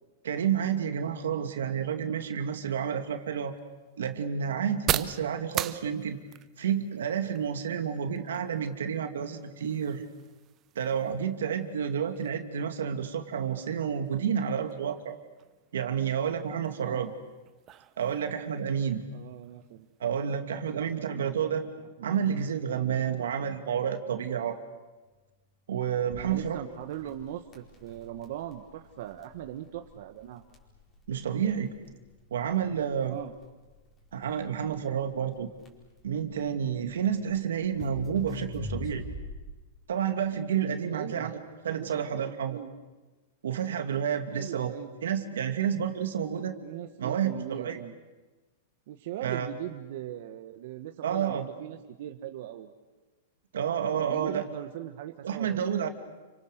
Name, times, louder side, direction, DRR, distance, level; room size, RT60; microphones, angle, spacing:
voice 1, 0.2-3.6 4.0-6.2 6.6-10.0 10.8-15.2 15.7-17.1 18.0-19.0 20.0-21.6 22.0-24.6 25.7-26.6 31.1-31.7 32.3-33.2 34.1-35.5 36.0-39.0 39.9-41.4 41.6-42.6 43.4-44.7 45.0-46.5 47.0-47.8 49.2-49.5 51.0-51.4 53.5-54.4 55.2-55.9, right 8 dB, 90° right, 7 dB, 2.5 m, -30 dB
sound 1, 2.7-20.3, right 12 dB, 30° right, 0.8 m, -41 dB
voice 2, 16.8-17.1 19.1-19.9 20.8-21.5 22.0-23.0 23.4-23.6 26.2-30.4 33.0-33.3 40.9-41.3 41.8-42.8 44.3-44.9 46.6-47.9 48.9-52.7 53.9-55.7, right 12 dB, 60° right, 6 dB, 1.5 m, -40 dB
Crackle, 26.1-39.7, left 2 dB, 20° left, 4.5 m, -43 dB
30.0 x 25.0 x 6.8 m, 1.2 s
hypercardioid pair, 145°, 0 cm